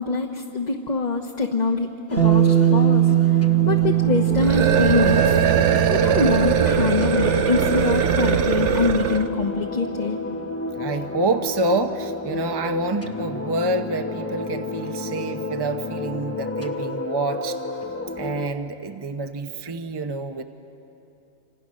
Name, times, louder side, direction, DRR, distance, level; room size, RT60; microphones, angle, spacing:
voice 1, 0.0-5.4 5.9-10.2, left 4 dB, 40° left, 1 dB, 1.2 m, -24 dB
sound 1, 2.1-18.5, left 2 dB, 15° left, 0.8 m, -31 dB
Bass guitar, 2.2-8.4, right 13 dB, 70° right, 1.5 m, -21 dB
sound 2, 4.3-9.3, right 8 dB, 90° right, 1.2 m, -21 dB
voice 2, 10.7-17.6 18.2-20.4, right 2 dB, 25° right, 6 dB, 0.8 m, -27 dB
26.5 x 26.5 x 6.4 m, 2.9 s
omnidirectional pair, 1.2 m